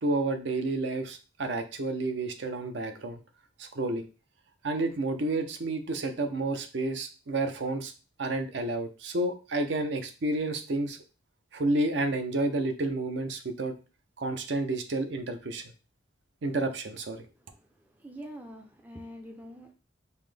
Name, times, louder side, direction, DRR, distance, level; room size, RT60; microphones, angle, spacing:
voice 1, 0.0-3.2 3.6-4.1 4.6-7.9 8.2-11.0 11.5-13.7 14.2-15.6 16.4-17.2, right 2 dB, 65° right, 7 dB, 0.5 m, -30 dB
voice 2, 18.0-19.7, equal, 10° right, 3 dB, 0.4 m, -44 dB
5.5 x 2.1 x 3.2 m, 0.33 s
head